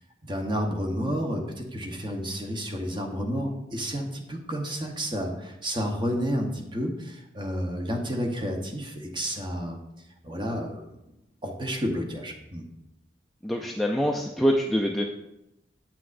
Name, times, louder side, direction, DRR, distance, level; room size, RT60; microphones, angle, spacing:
voice 1, 0.2-9.8 10.2-10.9 11.4-12.6, equal, 25° right, 2 dB, 0.9 m, -30 dB
voice 2, 13.4-15.0, equal, ahead, -1 dB, 0.3 m, -25 dB
8.5 x 6.0 x 2.5 m, 0.87 s
head